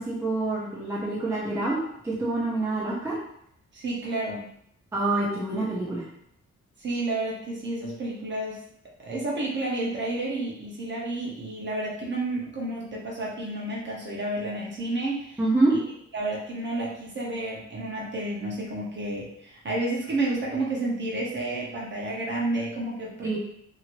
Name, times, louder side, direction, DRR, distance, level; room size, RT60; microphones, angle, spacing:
voice 1, 0.0-1.8 2.0-3.2 4.9-6.0 15.4-15.7 23.2-23.4, right 2 dB, 10° right, -6 dB, 0.6 m, -26 dB
voice 2, 3.7-4.5 6.8-8.6 9.0-15.4 15.7-15.8 16.1-23.4, right 2 dB, 40° right, -4 dB, 0.9 m, -30 dB
2.8 x 2.6 x 3.0 m, 0.72 s
wide cardioid pair, 145°, 29 cm